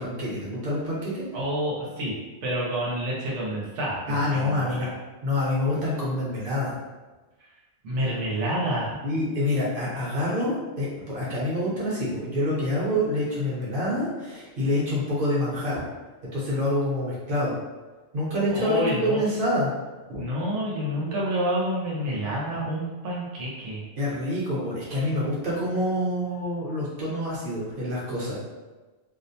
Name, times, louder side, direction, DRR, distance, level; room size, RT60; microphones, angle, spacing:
voice 1, 0.0-1.3 4.1-4.9 5.2-6.8 9.0-15.8 16.3-17.5 18.1-19.7 20.1-20.2 24.0-28.4, left 1 dB, 50° right, -7 dB, 1.0 m, -27 dB
voice 2, 1.3-2.1 2.4-4.9 7.8-8.9 18.5-19.2 20.2-23.8, right 1 dB, 85° right, -5 dB, 1.0 m, -28 dB
2.4 x 2.1 x 2.7 m, 1.2 s
omnidirectional pair, 1.2 m